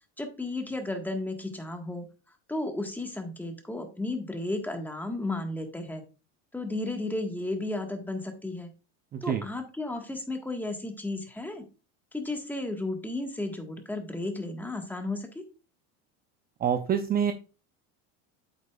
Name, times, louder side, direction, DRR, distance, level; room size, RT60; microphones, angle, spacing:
voice 1, 0.2-2.1 2.5-6.0 6.5-8.7 9.2-11.6 12.1-15.4, left 2 dB, 5° left, 4 dB, 1.6 m, -33 dB
voice 2, 9.1-9.4 16.6-17.3, right 8 dB, 25° right, 8 dB, 0.7 m, -26 dB
8.3 x 8.1 x 2.4 m, 0.32 s
supercardioid pair, 120°, 35 cm